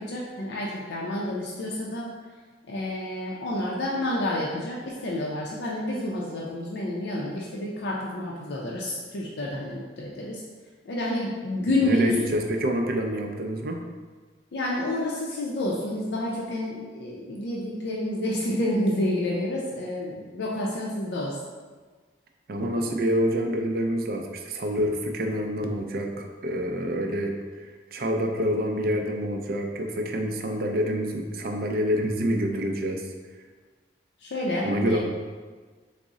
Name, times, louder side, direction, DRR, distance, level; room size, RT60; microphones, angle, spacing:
voice 1, 0.0-2.1 2.7-10.4 10.8-12.1 14.5-21.4 34.2-35.0, left 1 dB, 75° left, -4 dB, 0.4 m, -29 dB
voice 2, 11.8-13.8 22.5-33.0 34.6-35.0, equal, 55° right, 3 dB, 0.4 m, -27 dB
3.9 x 2.0 x 3.6 m, 1.4 s
head